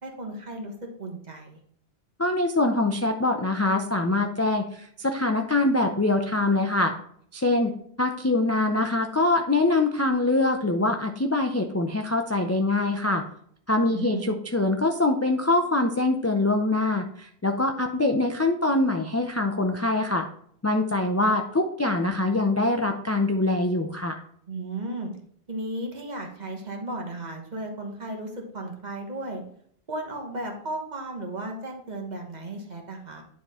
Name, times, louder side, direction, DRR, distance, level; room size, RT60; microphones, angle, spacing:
voice 1, 0.0-1.6 13.9-14.3 24.5-25.1 25.5-29.4 29.9-33.2, right 2 dB, 45° right, 1 dB, 1.4 m, -35 dB
voice 2, 2.2-6.9 7.3-13.2 13.7-20.3 20.6-24.2, left 2 dB, 25° left, 4 dB, 0.3 m, -24 dB
9.6 x 3.7 x 4.2 m, 0.64 s
omnidirectional pair, 1.1 m